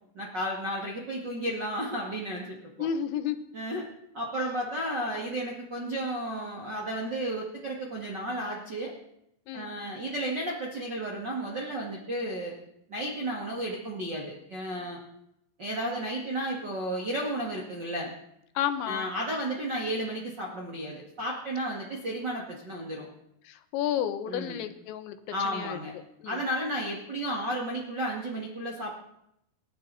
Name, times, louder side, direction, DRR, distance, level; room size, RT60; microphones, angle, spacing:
voice 1, 0.1-2.9 3.5-3.9 4.1-8.9 9.5-12.5 12.9-15.0 15.6-18.1 18.8-23.1 24.3-24.6 25.3-25.9 26.2-28.9, right 1 dB, 45° right, -2 dB, 1.4 m, -33 dB
voice 2, 2.8-3.4 9.5-9.7 18.6-19.1 23.7-25.2 25.4-25.8 26.2-26.4, left 9 dB, 80° left, 9 dB, 3.2 m, -31 dB
29.0 x 12.0 x 4.1 m, 0.79 s
omnidirectional pair, 5.4 m